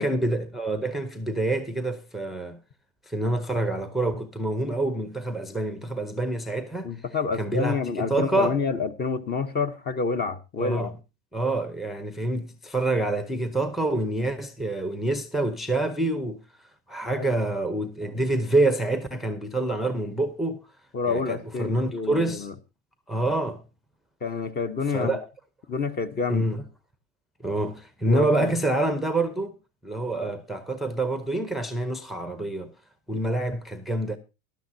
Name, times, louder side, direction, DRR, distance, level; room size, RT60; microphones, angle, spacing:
voice 1, 0.0-2.6 3.1-6.9 7.4-8.6 10.6-10.9 11.3-16.4 16.9-20.6 21.1-22.5 23.1-23.6 24.9-25.3 26.3-26.6 27.4-29.5 29.8-32.7 33.1-34.2, right 2 dB, ahead, 0.7 m, -27 dB
voice 2, 6.8-10.9 17.1-17.3 20.9-22.5 24.2-25.2 25.7-26.5 28.0-28.5 30.1-30.3, left 5 dB, 25° left, 0.9 m, -28 dB
16.0 x 11.5 x 2.7 m
supercardioid pair, 135°, 40 cm